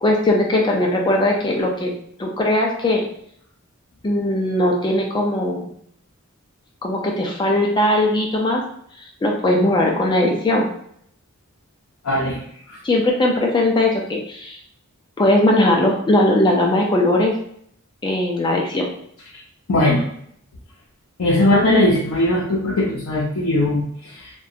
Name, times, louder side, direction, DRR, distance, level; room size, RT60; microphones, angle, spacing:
voice 1, 0.0-1.9 2.2-3.0 4.0-5.7 6.8-8.6 9.2-10.7 12.8-14.6 15.2-17.4 18.0-18.9, left 1 dB, 20° left, -1 dB, 0.3 m, -19 dB
voice 2, 12.0-12.4 12.7-12.8 19.7-20.0 21.2-24.3, left 1 dB, 70° left, -5 dB, 0.5 m, -19 dB
2.7 x 2.2 x 2.4 m, 0.67 s
head